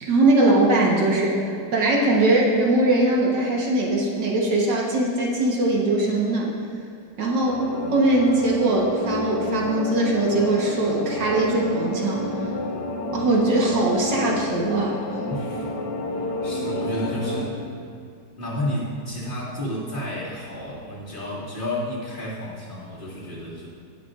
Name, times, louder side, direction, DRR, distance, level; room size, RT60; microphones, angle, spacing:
voice 1, 0.0-1.4 1.7-6.5 7.2-7.6 7.9-12.3 13.1-15.0, right 2 dB, 75° right, -3 dB, 1.9 m, -21 dB
sound 1, 7.5-17.4, left 2 dB, 75° left, 1.5 m, -29 dB
voice 2, 15.3-15.7 16.4-17.6 18.4-23.7, left 1 dB, 30° left, -8 dB, 2.1 m, -31 dB
17.5 x 6.7 x 2.5 m, 2.4 s
omnidirectional pair, 1.9 m